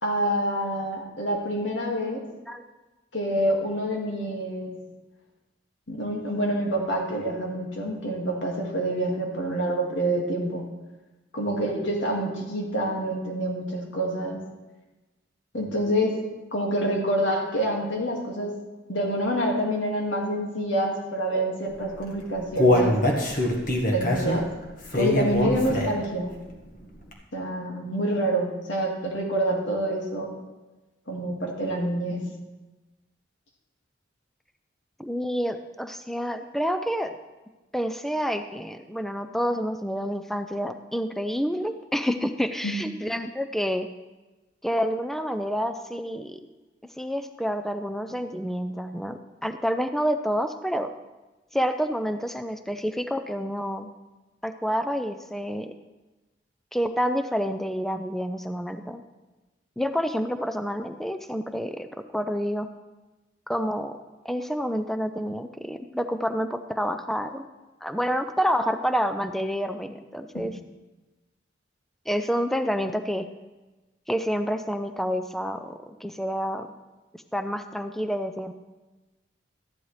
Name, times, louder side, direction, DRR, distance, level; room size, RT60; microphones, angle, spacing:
voice 1, 0.0-2.2 3.1-4.8 5.9-10.8 11.3-14.4 15.5-16.2 16.5-18.5 18.9-23.0 23.9-24.5 24.9-26.4 27.3-30.3 31.1-32.3 42.6-42.8 70.3-70.5, right 1 dB, 75° left, 0 dB, 2.1 m, -27 dB
Human voice, 21.9-26.1 26.5-26.6 27.1-27.2, left 1 dB, 45° left, 1.6 m, -23 dB
voice 2, 35.0-37.2 37.7-43.9 44.6-46.4 47.0-50.9 51.5-53.9 54.4-55.7 56.7-59.0 59.8-61.9 62.1-62.7 63.5-64.0 64.2-67.4 67.8-70.5 72.1-73.3 74.1-76.7 77.3-78.5, equal, ahead, 8 dB, 0.4 m, -28 dB
14.0 x 10.5 x 3.3 m, 1.1 s
head